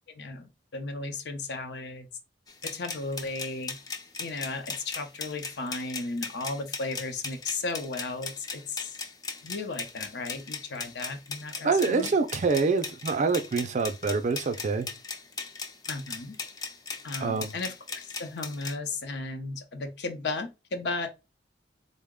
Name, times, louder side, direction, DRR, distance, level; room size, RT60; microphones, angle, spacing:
voice 1, 0.2-2.1 2.6-3.8 4.2-9.0 9.4-12.1 15.9-16.4 17.0-17.7 18.0-21.1, left 3 dB, 70° left, 0.7 m, -35 dB
sound 1, 2.5-18.7, left 4 dB, 20° left, 0.4 m, -38 dB
voice 2, 11.6-14.9 17.2-17.5, right 4 dB, 45° right, 0.4 m, -26 dB
3.8 x 2.1 x 3.5 m
head